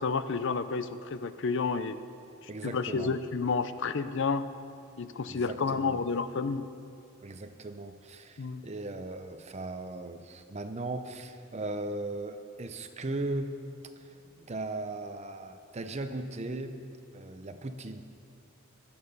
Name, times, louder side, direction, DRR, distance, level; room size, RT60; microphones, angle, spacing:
voice 1, 0.0-2.0 2.6-4.5 5.0-6.7 8.4-8.6, left 4 dB, 60° left, 12 dB, 0.6 m, -30 dB
voice 2, 2.5-3.2 5.3-6.0 7.2-13.5 14.0-16.8 17.1-18.0, right 2 dB, 30° right, 8 dB, 0.7 m, -38 dB
15.5 x 12.0 x 5.5 m, 2.5 s
head